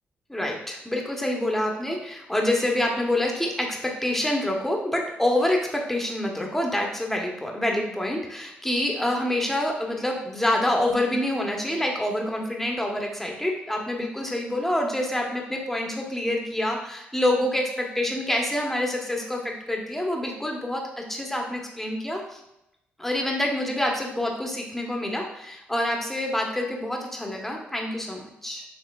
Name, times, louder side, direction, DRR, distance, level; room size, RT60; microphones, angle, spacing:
voice 1, 0.3-22.4 23.0-28.6, left 1 dB, 5° left, 0 dB, 1.1 m, -27 dB
6.7 x 3.1 x 2.4 m, 0.86 s
supercardioid pair, 65°, 4 cm